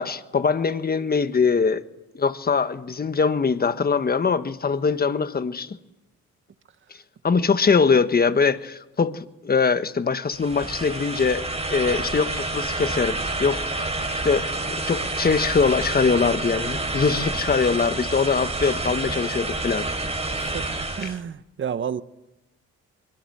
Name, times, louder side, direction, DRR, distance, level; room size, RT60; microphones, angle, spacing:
voice 1, 0.0-1.8 2.1-5.8 7.2-11.4 11.7-13.9 14.2-19.9, left 5 dB, 30° left, 1.4 m, -22 dB
sound 1, 10.3-21.2, right 2 dB, 20° right, 3.9 m, -28 dB
voice 2, 20.4-22.0, right 8 dB, 40° right, 1.1 m, -31 dB
24.0 x 22.0 x 7.9 m
cardioid pair, 90°, 30 cm